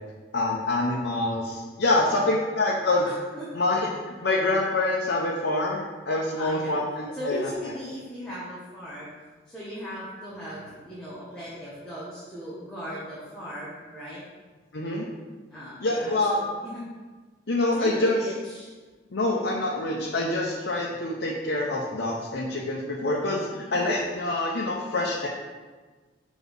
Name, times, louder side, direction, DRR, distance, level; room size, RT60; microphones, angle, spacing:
voice 1, 0.3-3.1 3.5-7.5 14.7-15.1 15.8-16.4 17.5-18.2 19.1-25.3, left 2 dB, 90° left, -3 dB, 0.8 m, -26 dB
voice 2, 2.0-2.3 3.0-3.5 6.4-6.8 7.1-9.1 9.5-14.2 15.5-16.9 17.7-18.7 23.5-24.0, equal, 5° left, -9 dB, 1.3 m, -38 dB
5.9 x 4.2 x 5.4 m, 1.3 s
head